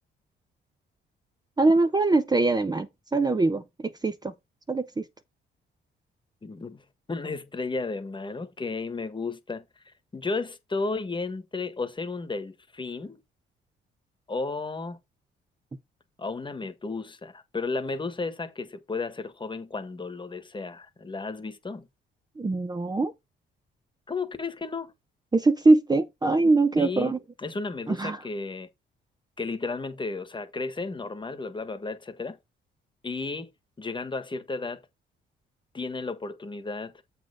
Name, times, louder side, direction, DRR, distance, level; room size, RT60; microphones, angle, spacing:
voice 1, 1.6-4.1 4.7-5.0 22.4-23.1 25.3-27.2 27.9-28.2, right 3 dB, 20° right, 0.8 m, -22 dB
voice 2, 6.4-6.8 7.1-9.6 10.1-13.2 14.3-15.0 16.2-21.9 24.1-24.9 26.8-28.7 29.4-32.4 33.0-33.5 33.8-34.8 35.7-36.9, left 3 dB, 25° left, 1.4 m, -33 dB
7.8 x 4.3 x 4.9 m
cardioid pair, 90°, 20 cm